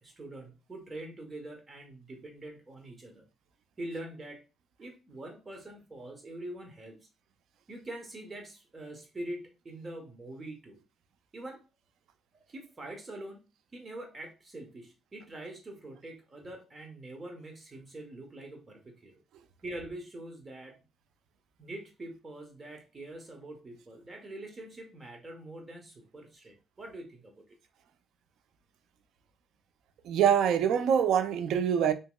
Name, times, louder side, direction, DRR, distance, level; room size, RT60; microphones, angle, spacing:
voice 1, 0.0-3.2 3.8-4.5 4.8-7.1 7.7-10.8 11.3-11.6 12.5-13.5 13.7-19.2 19.6-20.8 21.6-27.4, right 1 dB, 30° right, 1.0 m, -44 dB
voice 2, 30.1-31.9, right 8 dB, 80° right, 0.3 m, -24 dB
2.8 x 2.8 x 2.2 m
cardioid pair, 90°, 0 cm